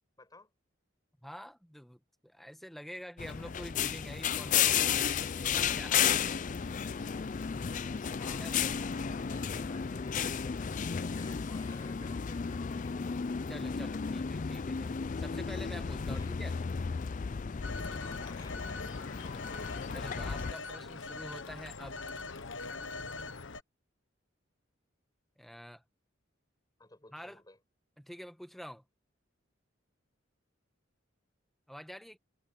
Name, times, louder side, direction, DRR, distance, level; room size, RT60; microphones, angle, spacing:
voice 1, 0.2-0.5 8.2-13.0 16.1-16.3 18.0-19.2 26.8-27.6, left 2 dB, 20° left, 6.6 m, -57 dB
voice 2, 1.2-6.1 8.4-8.6 13.5-14.9 15.2-16.6 19.9-22.0 25.4-25.8 27.1-27.4 28.0-28.8 31.7-32.2, equal, ahead, 1.4 m, -47 dB
sound 1, 3.2-20.5, left 7 dB, 40° left, 0.4 m, -33 dB
sound 2, 5.5-10.6, right 1 dB, 80° right, 3.5 m, -58 dB
Telephone, 17.6-23.6, left 3 dB, 70° left, 1.2 m, -42 dB
head